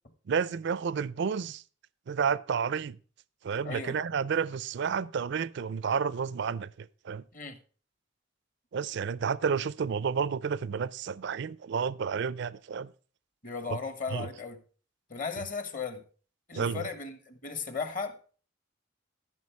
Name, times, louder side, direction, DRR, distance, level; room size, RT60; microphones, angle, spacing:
voice 1, 0.3-1.6 2.1-3.0 3.4-7.2 8.7-12.9 14.1-14.3 16.5-16.8, right 6 dB, 60° right, 0.4 m, -31 dB
voice 2, 3.6-4.0 7.3-7.6 13.4-14.6 15.1-16.0 16.5-18.3, left 5 dB, 45° left, 1.3 m, -36 dB
14.0 x 5.7 x 4.7 m
head